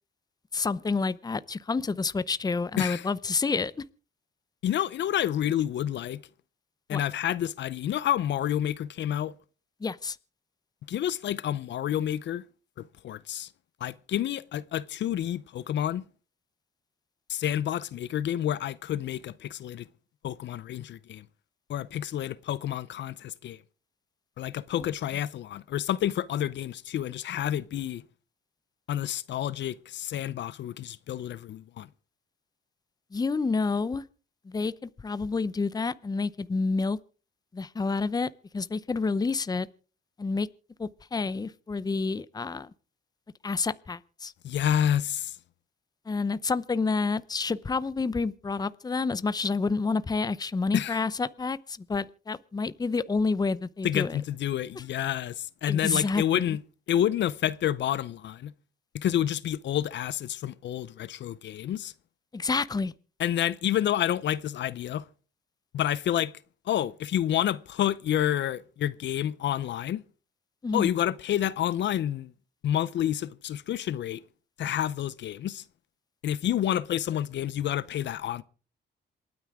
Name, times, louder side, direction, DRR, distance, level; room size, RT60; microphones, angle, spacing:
voice 1, 0.5-3.7 6.9-7.0 9.8-10.2 33.1-34.0 34.5-37.0 37.5-39.7 40.2-40.5 40.8-42.7 43.4-44.3 46.1-54.2 55.7-56.6 62.3-62.9 70.6-70.9, left 4 dB, 20° left, 0.7 m, -29 dB
voice 2, 2.8-3.1 4.6-6.2 6.9-9.3 10.9-12.4 12.8-13.5 13.8-16.0 17.3-19.9 20.2-21.2 21.7-23.6 24.4-28.0 28.9-31.9 44.4-45.4 50.7-51.0 53.8-56.6 56.9-58.5 58.9-61.9 63.2-65.0 65.7-66.3 66.7-70.0 70.7-72.3 72.6-74.2 74.6-75.6 76.2-78.4, left 11 dB, 65° left, 0.7 m, -29 dB
27.5 x 9.4 x 3.6 m
cardioid pair, 90°, 20 cm